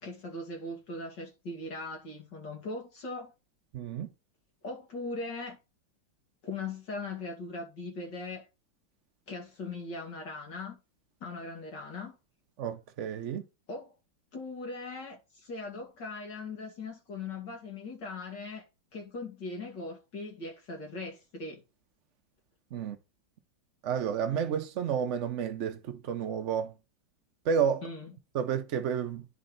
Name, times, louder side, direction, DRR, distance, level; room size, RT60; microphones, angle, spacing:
voice 1, 0.0-3.3 4.6-5.6 6.4-8.5 9.3-10.8 11.2-12.2 13.7-13.9 14.3-18.6 18.9-21.6 27.8-28.1, left 3 dB, 60° left, 2.9 m, -39 dB
voice 2, 3.7-4.1 12.6-13.4 22.7-23.0 23.8-26.7 27.4-27.9 28.3-29.3, right 7 dB, 65° right, 0.7 m, -31 dB
9.8 x 4.3 x 3.9 m
omnidirectional pair, 2.1 m